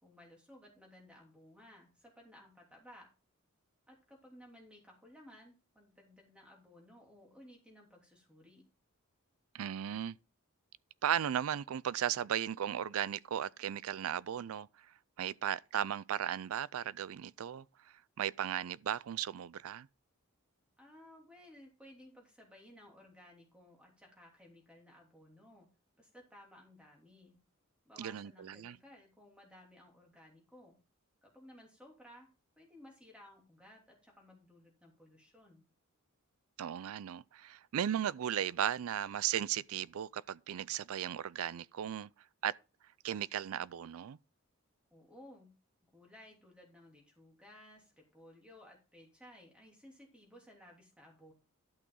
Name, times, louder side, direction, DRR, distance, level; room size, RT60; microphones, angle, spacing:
voice 1, 0.0-3.1 3.9-8.6 20.8-25.7 25.9-27.4 27.8-30.8 31.2-32.3 32.6-35.6 44.9-45.5 45.9-51.3, left 1 dB, 5° right, 3.0 m, -58 dB
voice 2, 9.5-10.2 11.0-14.7 15.2-17.6 18.2-19.9 28.0-28.8 36.6-42.1 42.4-42.5 43.0-44.2, right 10 dB, 75° right, 0.4 m, -36 dB
12.0 x 6.2 x 3.8 m
head